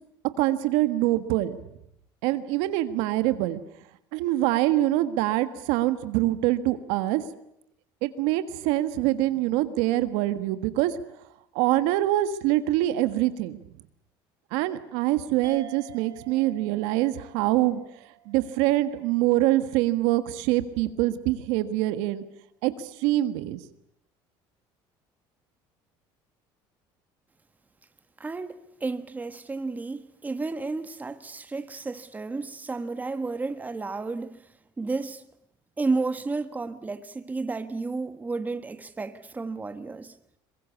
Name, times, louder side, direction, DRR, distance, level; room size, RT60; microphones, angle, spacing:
voice 1, 0.4-1.6 2.2-3.6 4.1-7.2 8.0-11.0 11.5-13.6 14.5-17.8 18.2-22.2 22.6-23.6, right 15 dB, 85° right, 1.6 m, -24 dB
sound 1, 15.4-20.3, right 11 dB, 35° right, 4.1 m, -50 dB
voice 2, 28.2-34.5 34.8-35.3 35.8-40.2, right 3 dB, 15° right, 1.4 m, -32 dB
23.5 x 22.0 x 8.4 m
cardioid pair, 110°, 10 cm